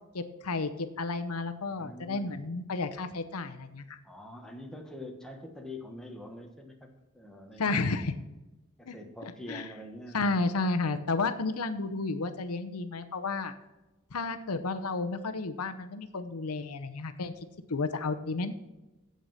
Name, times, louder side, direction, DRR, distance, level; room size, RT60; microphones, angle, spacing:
voice 1, 0.1-4.0 7.6-8.2 8.9-9.0 9.2-9.7 10.1-13.5 14.1-17.3 17.7-18.5, left 3 dB, 85° left, 10 dB, 0.8 m, -32 dB
voice 2, 1.7-2.4 4.0-7.8 8.8-10.3, left 1 dB, 5° left, 1 dB, 1.3 m, -45 dB
8.2 x 7.8 x 5.6 m, 1.0 s
head